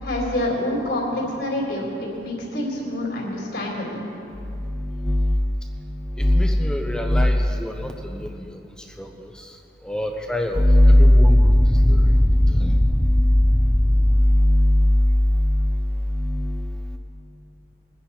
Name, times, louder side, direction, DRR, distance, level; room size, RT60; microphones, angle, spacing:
voice 1, 0.0-4.0, left 1 dB, 75° left, -3 dB, 4.1 m, -27 dB
voice 2, 4.6-5.4 6.2-8.6 9.0-9.5 9.8-15.8 16.1-17.0, left 1 dB, 5° left, 3 dB, 0.7 m, -18 dB
22.0 x 10.5 x 4.3 m, 2.6 s
head